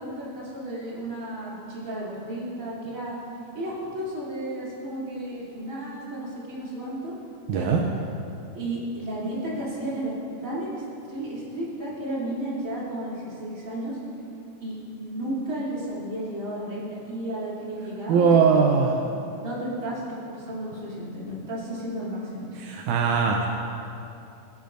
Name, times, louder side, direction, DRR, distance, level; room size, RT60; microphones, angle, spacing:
voice 1, 0.0-3.2 3.5-7.1 7.5-7.7 8.5-10.1 10.4-10.7 11.0-14.0 14.6-20.0 20.3-22.4, right 1 dB, 25° right, -9 dB, 3.2 m, -33 dB
voice 2, 7.5-7.8 18.1-19.0 22.6-23.5, right 5 dB, 80° right, 1 dB, 2.1 m, -20 dB
17.5 x 10.5 x 2.6 m, 2.7 s
omnidirectional pair, 3.5 m